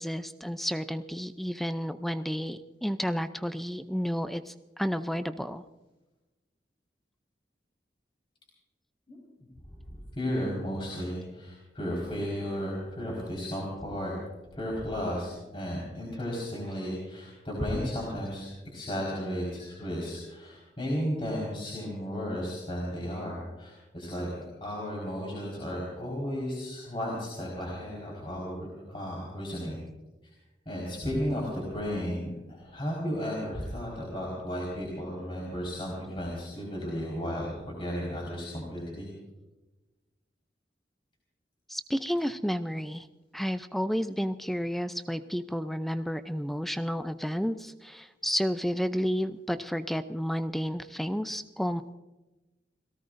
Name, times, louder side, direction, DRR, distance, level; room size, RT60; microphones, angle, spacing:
voice 1, 0.0-5.6 41.7-43.1 43.3-51.8, equal, ahead, 10 dB, 0.5 m, -31 dB
voice 2, 9.1-9.5 9.9-14.1 14.5-29.8 30.7-39.1, equal, 30° left, -3 dB, 4.6 m, -34 dB
30.0 x 18.0 x 2.6 m, 1.1 s
head